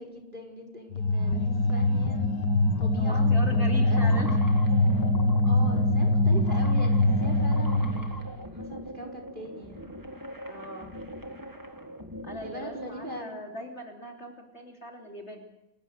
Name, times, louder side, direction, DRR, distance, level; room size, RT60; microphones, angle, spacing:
voice 1, 0.0-2.3 2.8-4.2 5.4-9.9 12.4-13.4, right 1 dB, 25° right, 0 dB, 5.0 m, -41 dB
sound 1, 0.9-8.3, left 1 dB, 75° left, 2.3 m, -23 dB
voice 2, 3.0-4.4 10.5-10.9 12.2-15.4, equal, 40° left, 1 dB, 3.4 m, -40 dB
sound 2, 3.7-13.2, equal, 10° right, 1.9 m, -42 dB
28.5 x 14.5 x 8.0 m, 0.95 s
omnidirectional pair, 1.8 m